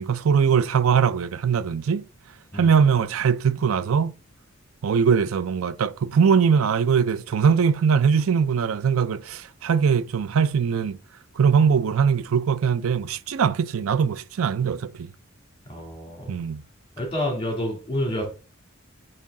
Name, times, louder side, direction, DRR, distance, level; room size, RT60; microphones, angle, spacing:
voice 1, 0.0-2.0 2.5-4.1 4.8-11.0 11.4-15.1 16.3-16.6, right 6 dB, 85° right, 0.4 m, -21 dB
voice 2, 15.7-16.4 17.0-18.3, left 1 dB, 25° left, 2.5 m, -28 dB
8.5 x 3.3 x 3.6 m
head